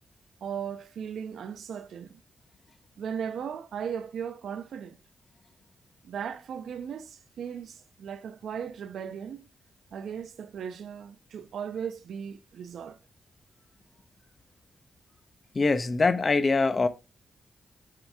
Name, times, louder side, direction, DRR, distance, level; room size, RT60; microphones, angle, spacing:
voice 1, 0.4-2.2 3.0-5.0 6.0-9.5 9.9-13.0, right 7 dB, 85° right, 0.9 m, -37 dB
voice 2, 15.5-16.9, left 3 dB, 40° left, 1.0 m, -23 dB
7.7 x 5.8 x 3.4 m
cardioid pair, 80°, 0 cm